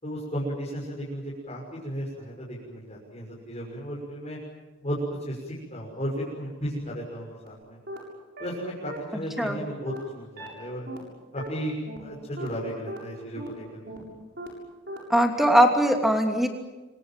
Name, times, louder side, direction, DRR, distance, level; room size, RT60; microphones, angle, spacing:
voice 1, 0.0-4.4 4.8-5.0 5.2-7.8 8.4-10.9 11.3-13.8 14.1-14.2, equal, 35° left, -5 dB, 6.4 m, -34 dB
sound 1, 7.5-7.6 7.9-8.0 8.4-8.5 8.9-9.0 9.4-9.5 9.9-10.0 10.4-10.5 10.9-11.0 11.4-11.5 11.9-12.0 12.4-12.5 12.9-13.0 13.4-13.5 13.9-14.0 14.4-14.5 14.9-15.0 15.4-15.5, right 1 dB, 55° right, 7.5 m, -37 dB
voice 2, 9.1-9.6 15.1-16.5, equal, ahead, 3 dB, 2.9 m, -21 dB
27.0 x 25.5 x 7.7 m, 1.2 s
head